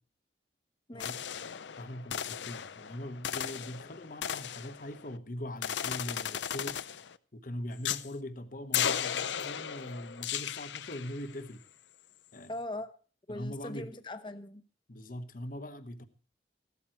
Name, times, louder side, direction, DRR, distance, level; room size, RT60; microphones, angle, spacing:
voice 1, 0.9-1.3 12.5-12.9 13.3-14.6, left 1 dB, 25° left, 0.9 m, -40 dB
sound 1, 1.0-5.2 5.6-7.2 7.8-8.1 8.7-11.3, left 9 dB, 85° left, 0.6 m, -36 dB
voice 2, 1.8-6.9 7.3-11.6 12.3-12.5 13.3-13.9 14.9-16.1, left 1 dB, 50° left, 1.2 m, -41 dB
15.5 x 12.0 x 4.6 m
head